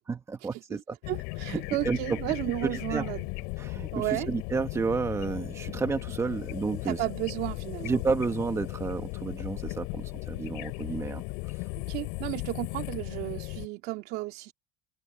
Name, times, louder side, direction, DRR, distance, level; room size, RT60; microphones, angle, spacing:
voice 1, 0.1-1.0 1.5-2.2 2.6-3.1 3.6-7.0 7.8-11.6, right 4 dB, 15° right, 1.6 m, -31 dB
sound 1, 1.0-13.7, left 29 dB, 70° left, 7.2 m, -37 dB
voice 2, 1.1-3.3 3.9-4.3 6.9-7.9 11.7-14.5, right 19 dB, 60° right, 3.0 m, -33 dB
cardioid pair, 155°, 18 cm